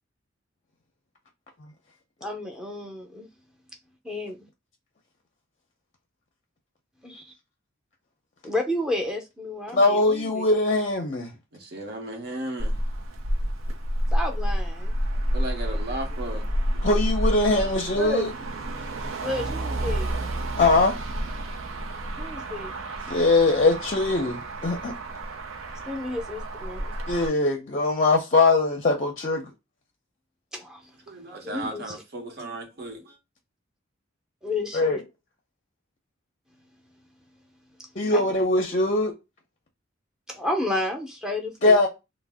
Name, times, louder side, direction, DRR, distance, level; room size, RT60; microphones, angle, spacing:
voice 1, 2.2-3.3 4.0-4.4 7.0-7.3 8.4-10.4 14.1-15.0 18.0-18.3 19.2-20.1 22.2-22.7 25.9-26.9 30.5-30.8 31.4-31.9 34.4-35.0 38.1-38.2 40.3-41.9, left 1 dB, 5° right, 0.6 m, -31 dB
voice 2, 9.7-11.3 16.8-18.3 20.5-20.9 23.1-24.9 27.1-29.5 34.7-35.0 38.0-39.1 41.6-41.9, left 2 dB, 40° left, 0.6 m, -21 dB
voice 3, 11.5-12.7 15.1-16.8 31.1-33.1, right 1 dB, 55° right, 0.9 m, -36 dB
Motor vehicle (road), 12.6-27.3, right 1 dB, 80° right, 0.6 m, -29 dB
2.5 x 2.1 x 3.4 m
head